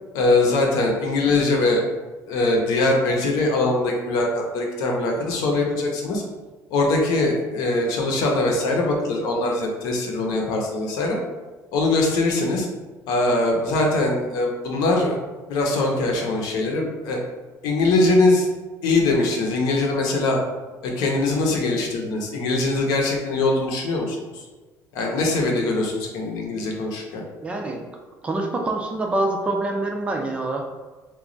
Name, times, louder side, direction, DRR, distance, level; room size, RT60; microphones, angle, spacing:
voice 1, 0.1-1.9 2.3-6.2 6.7-11.2 11.7-12.7 13.1-15.2 15.5-17.2 17.6-18.5 18.8-20.4 20.8-24.4 24.9-27.2, left 2 dB, 75° left, 0 dB, 0.8 m, -22 dB
voice 2, 27.4-27.8 28.2-30.6, right 2 dB, 15° right, 2 dB, 0.4 m, -25 dB
3.0 x 2.3 x 3.8 m, 1.3 s
cardioid pair, 160°, 7 cm